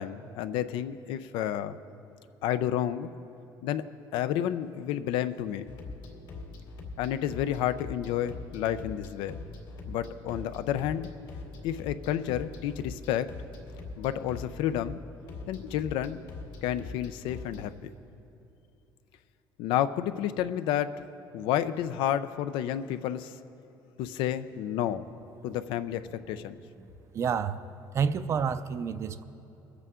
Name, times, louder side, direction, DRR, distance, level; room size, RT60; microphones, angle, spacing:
voice 1, 0.0-1.8 2.4-3.1 3.6-3.8 4.1-5.7 7.0-9.4 9.9-11.1 11.6-13.3 14.0-15.0 15.5-16.2 16.6-17.7 19.6-21.0 21.3-23.4 24.0-25.0 25.4-26.6, left 11 dB, 85° left, 12 dB, 0.5 m, -30 dB
sound 1, 5.7-17.7, left 3 dB, 70° left, 2.2 m, -43 dB
voice 2, 27.1-27.6 27.9-29.2, right 6 dB, 35° right, 13 dB, 0.4 m, -29 dB
23.0 x 8.2 x 3.7 m, 2.9 s
cardioid pair, 150°, 8 cm